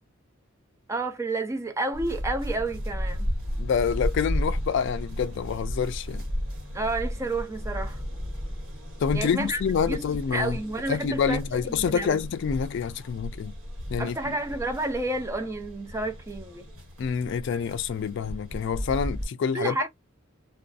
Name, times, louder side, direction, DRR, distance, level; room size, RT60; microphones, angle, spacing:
voice 1, 0.9-3.3 6.7-8.0 9.1-10.1 10.3-11.4 11.7-12.2 14.0-16.7 19.5-19.9, right 2 dB, 15° right, 0.4 m, -30 dB
sound 1, 1.9-19.3, equal, 80° right, 1.2 m, -34 dB
voice 2, 3.6-6.3 9.0-10.6 10.9-13.5 13.9-14.2 17.0-19.7, left 6 dB, 60° left, 0.3 m, -27 dB
2.5 x 2.3 x 2.3 m
head